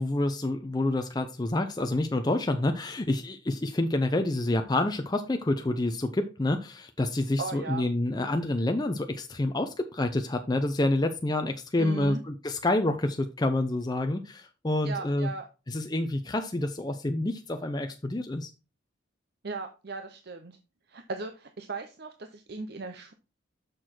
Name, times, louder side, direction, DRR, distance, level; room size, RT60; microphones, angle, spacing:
voice 1, 0.0-15.3 15.7-18.5, left 2 dB, 20° left, 6 dB, 0.5 m, -28 dB
voice 2, 7.4-7.9 11.8-12.2 14.8-15.5 19.4-20.6 20.9-23.1, right 4 dB, 55° right, 7 dB, 0.7 m, -37 dB
6.7 x 6.2 x 4.4 m, 0.31 s
head